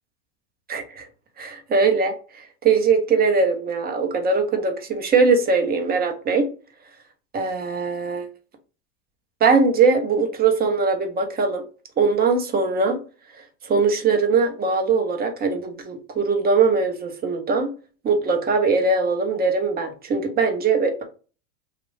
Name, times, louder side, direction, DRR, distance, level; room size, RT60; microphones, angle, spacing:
voice 1, 0.7-1.1 1.4-2.1 2.6-6.5 7.3-8.3 9.4-11.6 12.0-13.0 13.6-17.7 18.0-21.0, right 4 dB, 20° right, 5 dB, 0.6 m, -21 dB
3.0 x 2.4 x 3.2 m, 0.36 s
hypercardioid pair, 110°, 50 cm